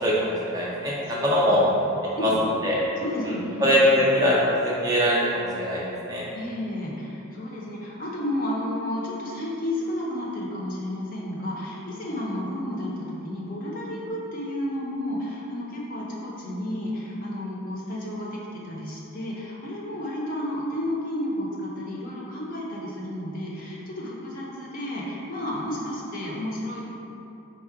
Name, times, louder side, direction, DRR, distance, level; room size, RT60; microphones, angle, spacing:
voice 1, 0.0-0.9 1.2-1.6 2.2-2.3 2.6-2.8 3.6-6.3, equal, 15° right, -6 dB, 0.4 m, -22 dB
voice 2, 2.2-2.5 3.0-3.8 6.3-26.8, left 1 dB, 40° left, -4 dB, 0.6 m, -32 dB
4.4 x 2.1 x 4.6 m, 2.9 s
head